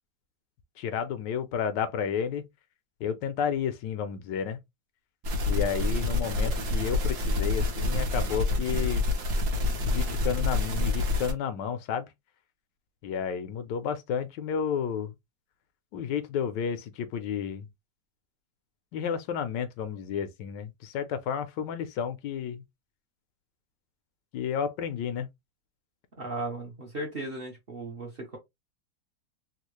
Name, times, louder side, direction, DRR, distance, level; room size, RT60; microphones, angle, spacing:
voice 1, 0.8-2.4 3.0-4.6 5.5-9.1 9.8-12.1 13.0-15.1 15.9-17.7 18.9-22.6 24.3-25.3, left 7 dB, 80° left, 1.2 m, -31 dB
sound 1, 5.2-11.3, left 2 dB, 60° right, 1.4 m, -27 dB
voice 2, 26.2-28.4, right 2 dB, 40° right, 0.9 m, -36 dB
3.6 x 2.4 x 3.0 m
omnidirectional pair, 1.9 m